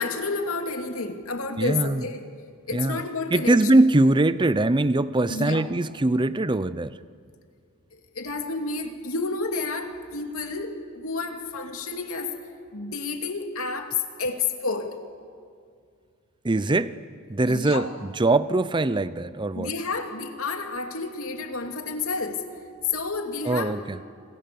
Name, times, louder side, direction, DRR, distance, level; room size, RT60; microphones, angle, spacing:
voice 1, 0.0-2.2 2.7-3.6 5.3-5.7 7.9-12.3 12.7-15.0 17.5-17.9 19.5-22.4 22.8-23.7, left 4 dB, 85° left, 4 dB, 2.7 m, -30 dB
voice 2, 1.6-2.0 2.7-3.0 3.3-7.0 16.4-16.9 17.3-19.7 23.4-24.0, right 2 dB, 20° right, 15 dB, 0.6 m, -22 dB
27.5 x 27.0 x 7.0 m, 2.2 s
head